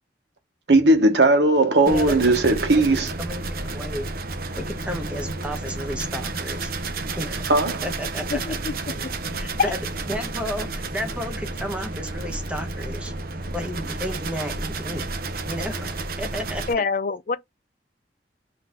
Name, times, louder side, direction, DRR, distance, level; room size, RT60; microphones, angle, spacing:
voice 1, 0.7-3.1 7.5-7.8, right 2 dB, 75° right, 1.1 m, -18 dB
voice 2, 1.9-2.2 2.7-4.1 4.6-6.7 7.2-8.6 9.4-9.8 10.1-13.1 13.5-15.0 15.5-16.8, equal, 5° right, 0.8 m, -33 dB
sound 1, 1.9-16.7, right 3 dB, 55° right, 0.6 m, -31 dB
voice 3, 8.3-9.1 9.6-9.7 16.7-17.4, left 5 dB, 50° left, 0.4 m, -26 dB
3.9 x 2.7 x 3.6 m
head